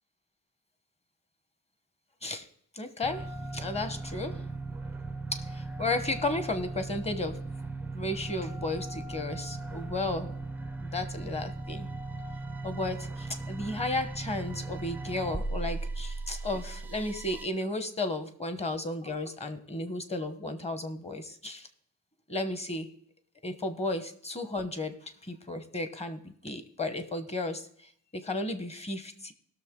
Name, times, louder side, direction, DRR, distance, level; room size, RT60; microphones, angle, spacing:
voice 1, 2.7-4.4 5.3-7.4 7.9-10.3 10.8-11.9 12.6-21.7 22.3-22.9 23.4-29.3, left 2 dB, 15° left, 10 dB, 1.0 m, -34 dB
sound 1, 3.0-17.5, right 3 dB, 5° right, 0.4 m, -38 dB
18.5 x 6.7 x 3.7 m, 0.63 s
cardioid pair, 150°, 37 cm